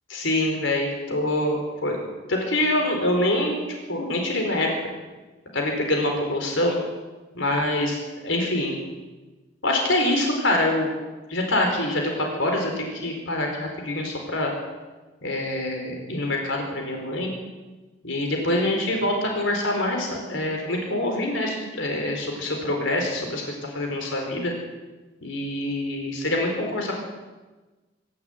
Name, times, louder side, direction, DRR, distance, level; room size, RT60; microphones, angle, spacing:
voice 1, 0.1-2.0 2.3-3.6 3.9-4.7 5.5-6.8 7.3-8.0 8.2-8.8 9.6-10.9 11.3-14.5 15.2-17.3 18.0-24.5 25.2-26.9, left 1 dB, 85° left, 2 dB, 4.5 m, -25 dB
24.5 x 12.0 x 9.5 m, 1.2 s
head